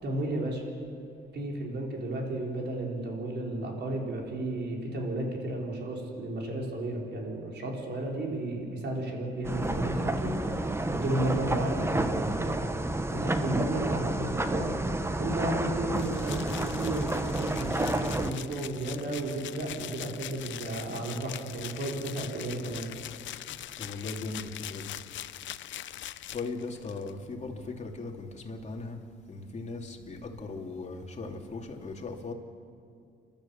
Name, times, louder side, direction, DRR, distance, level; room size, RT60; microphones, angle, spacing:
voice 1, 0.0-0.6 1.3-12.6 13.1-14.7 15.2-22.9, right 1 dB, 60° right, -1 dB, 4.8 m, -33 dB
sound 1, 9.4-18.3, right 2 dB, 15° right, 1.1 m, -30 dB
sound 2, 15.9-27.1, left 12 dB, 70° left, 0.7 m, -42 dB
voice 2, 23.8-24.9 26.3-29.0 29.3-32.3, left 3 dB, 35° left, 1 dB, 2.9 m, -38 dB
29.5 x 13.0 x 7.3 m, 2.4 s
cardioid pair, 90°, 20 cm